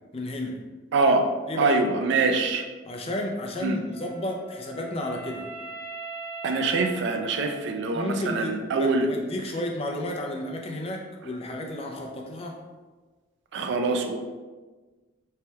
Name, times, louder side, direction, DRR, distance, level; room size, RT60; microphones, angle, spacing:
voice 1, 0.1-0.6 1.5-1.8 2.8-5.5 7.9-12.6, left 1 dB, 30° left, 1 dB, 0.4 m, -32 dB
voice 2, 0.9-1.3 1.6-2.7 3.6-3.8 6.4-9.1 13.5-14.2, right 3 dB, 65° right, 5 dB, 0.3 m, -24 dB
Wind instrument woodwind instrument, 3.9-8.1, right 3 dB, 85° right, 1.2 m, -40 dB
3.2 x 2.2 x 2.7 m, 1.3 s
head